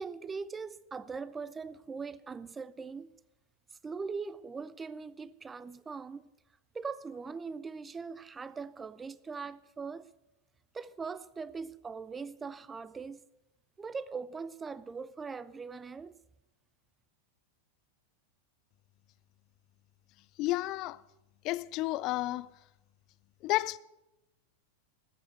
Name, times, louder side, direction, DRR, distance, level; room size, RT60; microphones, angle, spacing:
voice 1, 0.0-3.1 3.7-6.3 6.7-10.1 10.7-13.2 13.8-16.1, right 5 dB, 15° right, 0.5 m, -41 dB
voice 2, 20.4-21.0 21.4-22.5 23.4-23.8, left 18 dB, 40° left, 0.4 m, -31 dB
13.5 x 8.0 x 8.3 m
figure-of-eight pair, 90°, 0 cm